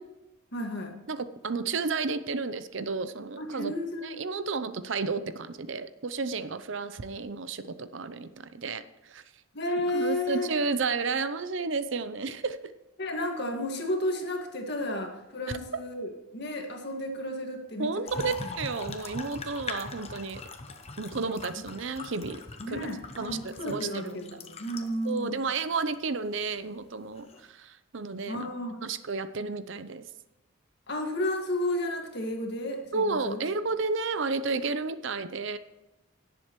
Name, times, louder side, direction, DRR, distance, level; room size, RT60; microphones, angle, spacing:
voice 1, 0.5-1.0 3.4-4.2 9.5-10.5 13.0-18.5 22.6-25.4 28.3-28.8 30.9-33.4, left 1 dB, 50° left, 2 dB, 1.9 m, -32 dB
voice 2, 1.1-3.7 4.0-9.2 9.9-12.6 17.8-20.4 21.0-22.4 22.7-22.8 23.2-24.2 25.0-28.5 28.8-30.1 32.9-35.6, right 4 dB, 65° right, 12 dB, 0.6 m, -32 dB
sound 1, 18.1-25.2 25.9-26.0 27.2-27.4, left 3 dB, 30° left, 1.0 m, -41 dB
17.5 x 7.7 x 3.1 m, 1.1 s
head